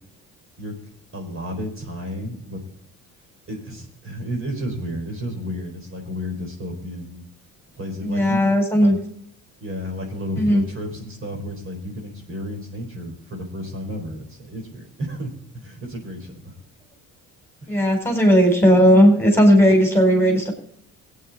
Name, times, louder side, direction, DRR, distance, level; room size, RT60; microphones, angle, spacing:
voice 1, 1.1-2.6 3.5-7.3 7.7-8.4 8.8-8.9 9.6-16.6 17.6-17.7, equal, 40° right, 2 dB, 4.4 m, -32 dB
voice 2, 8.0-9.0 10.4-10.6 17.7-20.5, equal, 5° left, 2 dB, 4.2 m, -16 dB
17.5 x 9.2 x 4.2 m, 0.64 s
cardioid pair, 90°, 33 cm